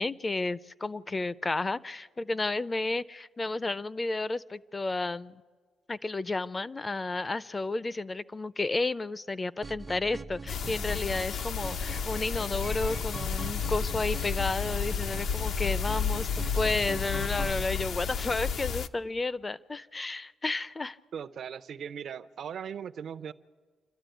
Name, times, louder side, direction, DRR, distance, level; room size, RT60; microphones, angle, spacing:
voice 1, 0.0-5.4 5.9-21.0, left 3 dB, 25° left, 17 dB, 0.6 m, -32 dB
sound 1, 9.6-17.6, right 3 dB, 20° right, 0.6 m, -42 dB
sound 2, 10.5-18.9, left 6 dB, 60° left, 0.7 m, -32 dB
voice 2, 21.1-23.3, right 8 dB, 60° right, 11 dB, 0.7 m, -39 dB
27.0 x 12.5 x 9.2 m, 1.5 s
cardioid pair, 90°, 0 cm